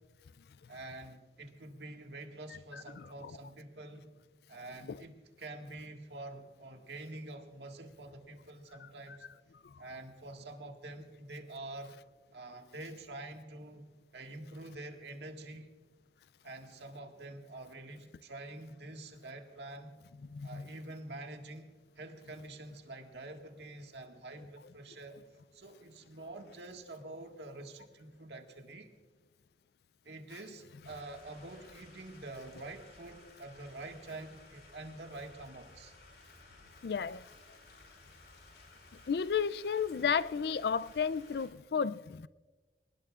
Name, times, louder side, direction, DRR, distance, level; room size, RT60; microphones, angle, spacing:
voice 1, 0.7-4.1 4.5-9.3 9.8-11.9 12.3-15.7 16.4-19.9 20.4-25.2 25.5-28.9 30.0-35.9, right 2 dB, 80° right, 1.8 m, -47 dB
voice 2, 3.0-3.3 4.9-5.0 20.3-20.7 36.8-37.2 39.1-42.3, left 6 dB, 65° left, 0.4 m, -33 dB
sound 1, 30.8-41.5, left 2 dB, 85° left, 4.9 m, -57 dB
23.0 x 20.0 x 2.4 m
head